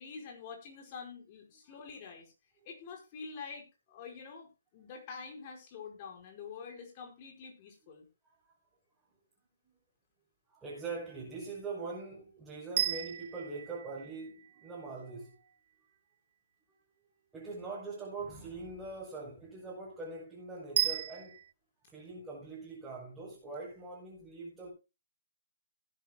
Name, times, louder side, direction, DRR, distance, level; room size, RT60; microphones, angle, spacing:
voice 1, 0.0-2.3 2.6-8.1, left 5 dB, 35° left, 4.7 m, -47 dB
voice 2, 10.5-15.5 17.3-21.4 21.9-24.7, right 3 dB, 10° right, 5.8 m, -43 dB
sound 1, 12.8-14.9 20.8-21.5, right 11 dB, 45° right, 0.5 m, -34 dB
18.5 x 10.5 x 2.2 m
figure-of-eight pair, 135°, 0 cm